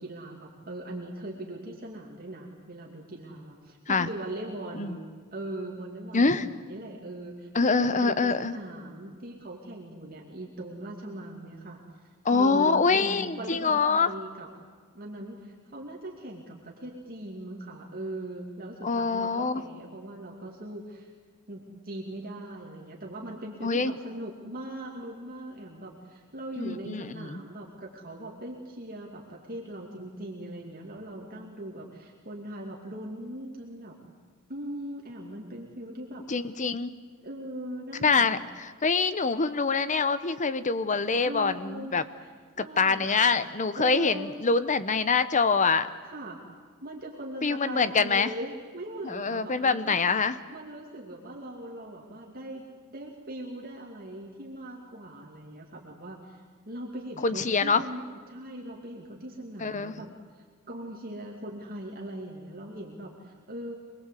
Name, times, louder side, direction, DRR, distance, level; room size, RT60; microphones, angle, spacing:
voice 1, 0.0-11.8 12.3-14.5 14.9-21.1 21.5-34.1 34.5-36.2 37.2-38.4 41.2-43.2 43.8-44.3 46.0-46.4 46.8-50.0 50.5-60.1 60.7-63.7, right 1 dB, 45° right, -1 dB, 2.7 m, -40 dB
voice 2, 6.1-6.5 7.5-8.5 12.2-14.1 18.8-19.6 23.6-23.9 26.6-27.4 36.3-36.9 38.0-42.0 42.6-45.9 47.4-48.3 49.0-50.4 57.2-57.8 59.6-59.9, left 4 dB, 35° left, 13 dB, 0.9 m, -25 dB
25.0 x 21.0 x 8.4 m, 1.5 s
head